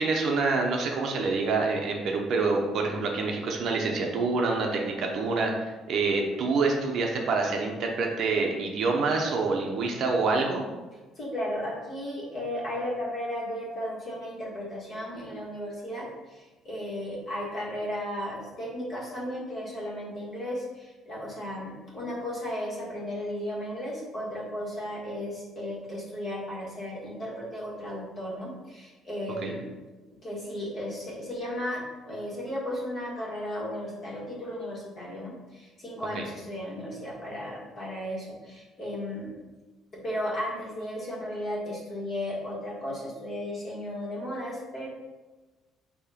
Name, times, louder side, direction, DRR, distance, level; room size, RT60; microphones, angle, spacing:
voice 1, 0.0-10.6 29.4-29.5 36.1-36.3, right 3 dB, 45° right, 1 dB, 0.7 m, -27 dB
voice 2, 11.2-29.7 30.2-39.3 39.9-44.9, left 1 dB, 30° left, -4 dB, 1.7 m, -35 dB
7.1 x 2.9 x 5.0 m, 1.2 s
cardioid pair, 175°, 0 cm